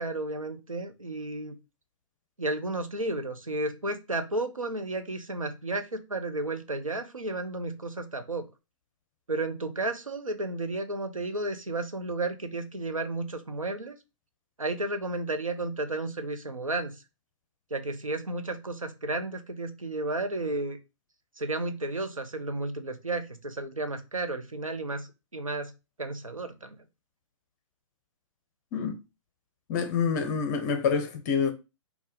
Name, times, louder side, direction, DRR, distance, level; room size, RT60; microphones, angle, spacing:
voice 1, 0.0-1.6 2.4-8.5 9.3-14.0 14.6-17.0 17.7-20.8 21.4-25.7 26.0-26.8, right 2 dB, 85° right, 0.7 m, -32 dB
voice 2, 29.7-31.5, left 6 dB, 35° left, 0.7 m, -27 dB
4.2 x 2.3 x 3.8 m
figure-of-eight pair, 120°, 17 cm